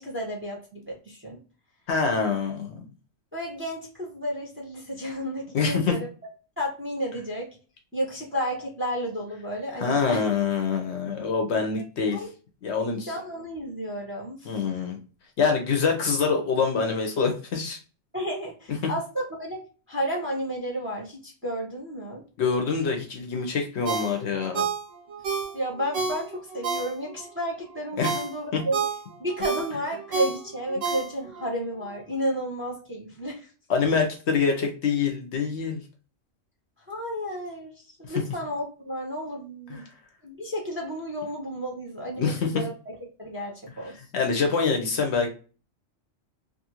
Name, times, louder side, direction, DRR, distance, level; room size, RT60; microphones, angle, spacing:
voice 1, 0.0-1.4 3.3-6.1 6.6-7.5 7.9-10.3 12.1-12.3 13.1-14.6 18.1-19.6 19.9-22.2 25.5-28.8 29.2-33.5 36.9-39.9 40.2-42.7 43.2-44.0, equal, 10° right, -1 dB, 0.7 m, -32 dB
voice 2, 1.9-2.8 5.5-6.0 9.8-12.2 12.6-13.1 14.5-15.0 15.4-17.8 22.4-24.7 28.0-28.2 28.5-28.6 33.7-35.8 39.7-39.8 42.2-42.5 44.1-45.3, left 5 dB, 65° left, 3 dB, 0.8 m, -25 dB
Ringtone, 23.8-27.3 27.7-31.5 31.9-32.0, right 5 dB, 85° right, 1.1 m, -30 dB
2.6 x 2.5 x 2.8 m, 0.36 s
omnidirectional pair, 1.3 m